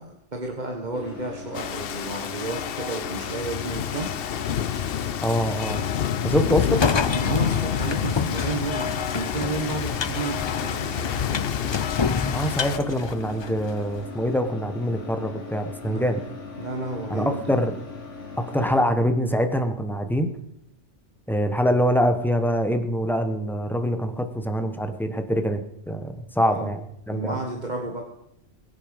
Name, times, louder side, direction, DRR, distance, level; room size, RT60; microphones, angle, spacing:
voice 1, 0.0-4.1 7.1-11.4 15.9-16.1 16.6-17.5 26.4-26.7 27.1-28.0, right 3 dB, 40° right, 1 dB, 1.7 m, -32 dB
sound 1, 0.9-18.8, left 4 dB, 80° left, 2.7 m, -39 dB
Rain, 1.5-12.8, left 9 dB, 60° left, 0.8 m, -28 dB
voice 2, 5.2-5.8 6.2-6.8 12.3-16.2 17.1-17.7 18.4-20.3 21.3-26.8 27.1-27.4, equal, ahead, 7 dB, 1.3 m, -24 dB
sound 2, 6.6-13.8, left 5 dB, 40° left, 0.4 m, -29 dB
22.0 x 8.9 x 5.3 m, 0.78 s
omnidirectional pair, 1.2 m